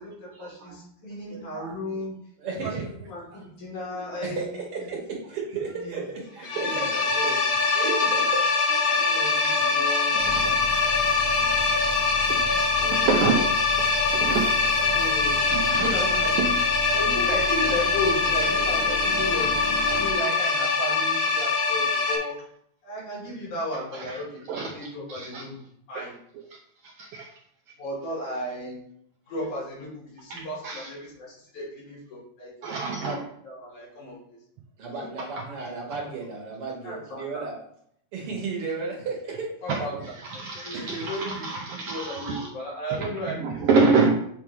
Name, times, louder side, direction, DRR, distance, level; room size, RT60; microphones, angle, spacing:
voice 1, 0.0-2.1 2.6-4.5 5.8-6.0 6.6-6.8 7.1-7.4 9.0-10.3 12.7-13.5 14.7-15.4 15.8-16.6 16.9-19.6 19.9-22.4 22.8-25.5 25.9-26.1 27.8-28.8 29.3-32.5 33.0-34.2 34.9-35.1 36.8-37.5 39.6-43.4 43.8-44.2, left 1 dB, 90° left, -6 dB, 4.6 m, -34 dB
voice 2, 2.4-2.9 4.2-7.3 7.7-8.4 34.8-37.6 38.1-39.5 40.7-41.0, right 4 dB, 55° right, -2 dB, 2.2 m, -33 dB
sound 1, 6.4-22.2, left 4 dB, 65° left, 2.3 m, -23 dB
sound 2, 10.2-20.1, left 2 dB, 35° right, 1.5 m, -36 dB
voice 3, 12.9-13.4 14.2-14.5 15.5-15.9 19.9-20.0 24.5-24.7 25.1-25.4 27.1-27.2 30.6-30.8 32.6-33.2 40.4-42.5 43.4-44.2, right 4 dB, 80° right, 2 dB, 1.3 m, -25 dB
8.0 x 3.6 x 4.6 m, 0.68 s
omnidirectional pair, 3.4 m